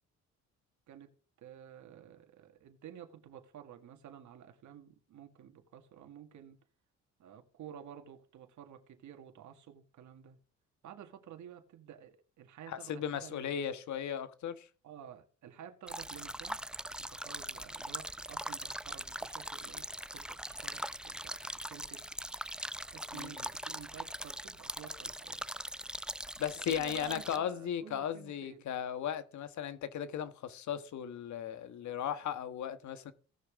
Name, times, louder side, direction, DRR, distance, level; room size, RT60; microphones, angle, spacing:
voice 1, 1.4-6.6 7.2-10.4 10.8-13.5 14.8-16.6 17.0-22.1 22.9-25.5 26.5-28.7, right 9 dB, 75° right, 2.1 m, -52 dB
voice 2, 12.7-14.7 23.1-23.3 26.4-33.1, left 9 dB, 70° left, 1.4 m, -36 dB
sound 1, 15.9-27.4, right 1 dB, 5° right, 0.6 m, -41 dB
17.5 x 6.8 x 3.7 m
cardioid pair, 90°, 30 cm